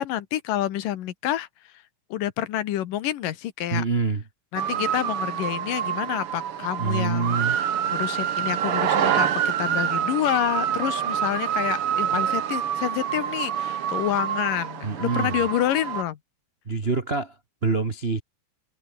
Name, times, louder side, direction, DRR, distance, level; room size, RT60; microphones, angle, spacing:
voice 1, 0.0-1.5 2.1-3.8 4.5-7.6 7.9-16.2, left 12 dB, 75° left, 3.0 m, -28 dB
voice 2, 3.7-4.2 6.8-7.6 14.8-15.5 16.6-18.2, right 4 dB, 90° right, 0.5 m, -26 dB
sound 1, 4.5-16.0, right 9 dB, 50° right, 1.9 m, -26 dB
omnidirectional pair, 3.9 m